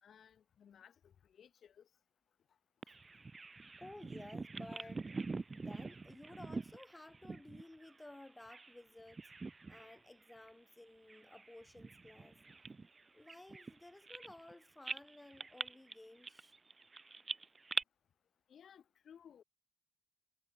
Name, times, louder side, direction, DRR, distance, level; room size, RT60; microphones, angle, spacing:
voice 1, 0.0-1.9 18.5-19.4, left 8 dB, 55° left, 3.9 m, -60 dB
Bird vocalization bird call bird song, 2.8-8.8 9.1-10.0 10.3-10.5 11.1-14.5 14.8-17.8, right 3 dB, 25° right, 0.8 m, -45 dB
voice 2, 3.8-5.1 5.5-9.3 9.7-12.4 13.1-16.5, left 1 dB, 10° left, 1.7 m, -55 dB
cardioid pair, 90°, 0 cm